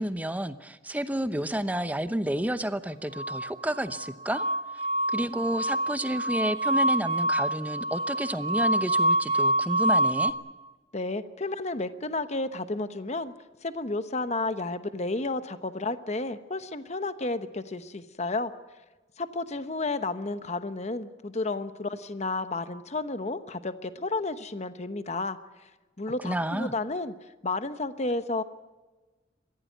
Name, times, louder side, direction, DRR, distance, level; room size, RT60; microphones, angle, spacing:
voice 1, 0.0-4.4 5.1-10.3 26.2-26.7, right 1 dB, 10° right, 11 dB, 0.8 m, -30 dB
sound 1, 3.1-10.3, right 1 dB, 30° right, 1.4 m, -27 dB
voice 2, 10.9-13.3 13.6-18.5 19.2-25.4 26.0-27.1 27.4-28.4, left 2 dB, 40° left, 11 dB, 1.0 m, -32 dB
23.0 x 16.0 x 9.4 m, 1.2 s
head